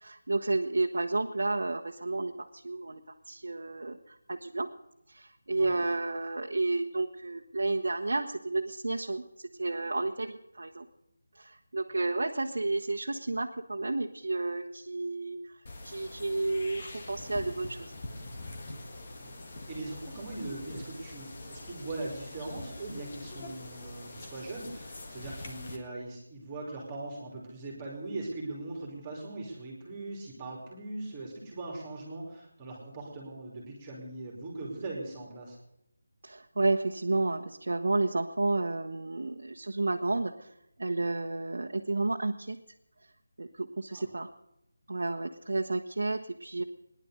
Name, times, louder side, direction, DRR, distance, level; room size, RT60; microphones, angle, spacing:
voice 1, 0.0-3.0 3.3-4.7 5.1-10.8 11.3-15.5 15.8-17.9 36.2-40.5 40.8-42.6 43.4-44.3 44.9-46.6, right 2 dB, 75° right, 1 dB, 1.1 m, -31 dB
sound 1, 15.7-25.8, left 2 dB, 35° left, 1.9 m, -44 dB
voice 2, 19.2-35.6 43.9-44.1, right 2 dB, 15° right, -1 dB, 2.9 m, -40 dB
19.0 x 10.5 x 6.4 m, 0.83 s
figure-of-eight pair, 175°, 0 cm